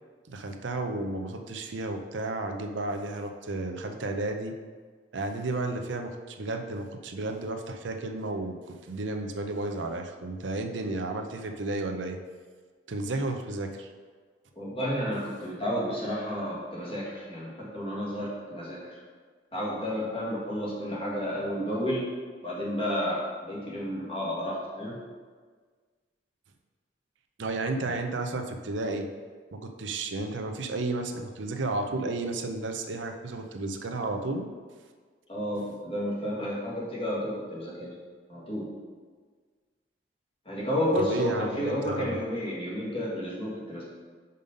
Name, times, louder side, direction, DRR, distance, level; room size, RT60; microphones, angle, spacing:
voice 1, 0.3-4.5 5.1-12.2 12.9-13.9 27.4-29.1 29.5-34.5 41.0-42.2, right 2 dB, 90° right, 5 dB, 0.6 m, -32 dB
voice 2, 14.6-19.0 19.5-22.1 22.4-25.0 35.3-37.9 38.3-38.7 40.5-43.8, equal, 30° left, -6 dB, 1.9 m, -31 dB
5.4 x 5.4 x 5.2 m, 1.5 s
head